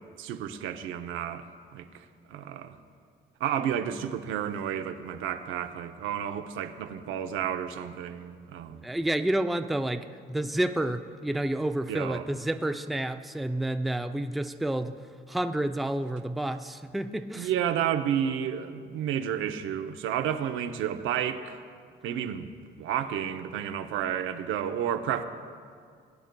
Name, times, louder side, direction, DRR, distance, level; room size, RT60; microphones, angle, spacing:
voice 1, 0.2-2.8 3.4-8.8 11.9-12.3 17.4-21.6 22.0-25.2, right 9 dB, 85° right, 8 dB, 0.6 m, -31 dB
voice 2, 8.8-15.0 15.3-17.5, right 1 dB, ahead, 8 dB, 0.4 m, -29 dB
21.0 x 9.0 x 2.2 m, 2.2 s
cardioid pair, 90°, 20 cm